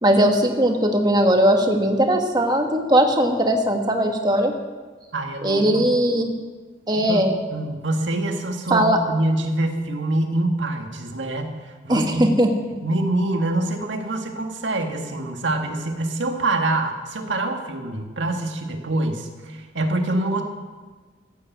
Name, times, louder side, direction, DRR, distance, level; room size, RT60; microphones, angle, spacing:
voice 1, 0.0-4.5 5.4-6.3 6.9-7.3 8.7-9.0 11.9-12.5, right 1 dB, 20° right, 3 dB, 1.4 m, -19 dB
voice 2, 5.1-5.8 7.1-12.3 12.7-20.4, right 2 dB, 85° right, 4 dB, 1.8 m, -25 dB
15.0 x 8.8 x 8.0 m, 1.4 s
head